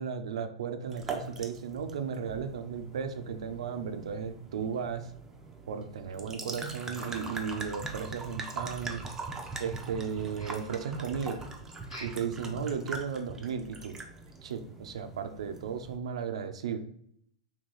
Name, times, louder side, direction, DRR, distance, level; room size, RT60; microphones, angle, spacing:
voice 1, 0.0-5.1 5.7-9.0 9.6-11.5 12.0-14.0 14.4-16.8, right 6 dB, 70° right, 9 dB, 0.5 m, -35 dB
sound 1, 0.9-16.0, right 3 dB, 15° right, 0.5 m, -42 dB
sound 2, 9.4-10.1 10.3-10.8 11.8-12.3 12.7-12.8 13.2-13.3 13.8-13.9, equal, 85° left, 1.3 m, -48 dB
3.2 x 2.9 x 3.9 m, 0.68 s
hypercardioid pair, 105°, 3 cm